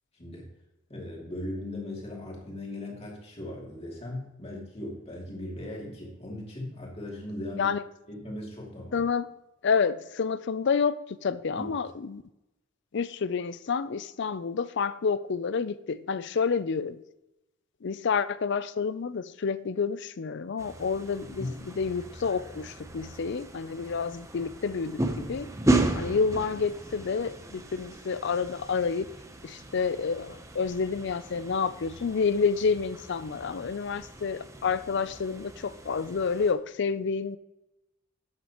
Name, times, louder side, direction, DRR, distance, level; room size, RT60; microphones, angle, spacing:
voice 1, 0.1-0.5 0.9-7.8 8.1-9.0 11.5-11.7 21.4-21.6, left 1 dB, 30° left, -2 dB, 2.8 m, -38 dB
voice 2, 8.9-9.3 9.6-12.2 12.9-17.0 17.8-25.5 25.9-29.1 29.4-37.4, left 5 dB, 55° left, 15 dB, 0.5 m, -29 dB
sound 1, 20.6-36.5, right 2 dB, 15° right, 0.8 m, -35 dB
12.0 x 8.2 x 3.0 m, 0.93 s
head